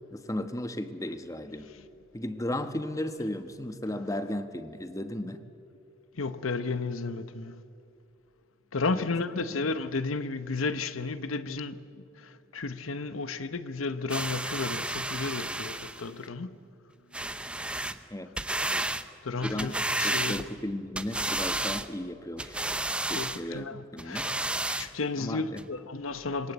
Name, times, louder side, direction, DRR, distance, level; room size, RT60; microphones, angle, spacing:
voice 1, 0.1-1.7 2.1-5.4 8.9-9.1 9.5-9.6 18.1-18.3 19.4-19.8 20.0-22.6 23.1-24.3 25.2-25.6, left 1 dB, 15° left, 1.1 m, -35 dB
voice 2, 6.1-7.6 8.7-16.6 17.8-17.9 19.2-20.4 23.1-24.4 24.7-26.5, left 3 dB, 85° left, 0.9 m, -33 dB
sound 1, 14.1-16.1 17.1-18.0 18.4-19.0 19.4-20.6 21.0-21.9 22.4-23.4 24.0-24.9 25.6-25.7, right 2 dB, 5° right, 0.7 m, -31 dB
26.5 x 22.0 x 8.1 m
head